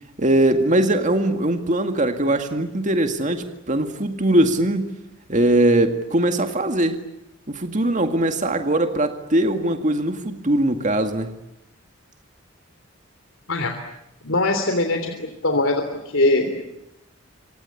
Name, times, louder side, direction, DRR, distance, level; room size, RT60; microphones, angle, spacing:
voice 1, 0.2-4.9 5.3-7.0 7.5-11.3, right 1 dB, 40° right, 6 dB, 2.0 m, -21 dB
voice 2, 14.2-15.1 15.4-16.7, left 2 dB, 80° left, 5 dB, 3.3 m, -21 dB
27.5 x 25.0 x 8.6 m, 0.86 s
head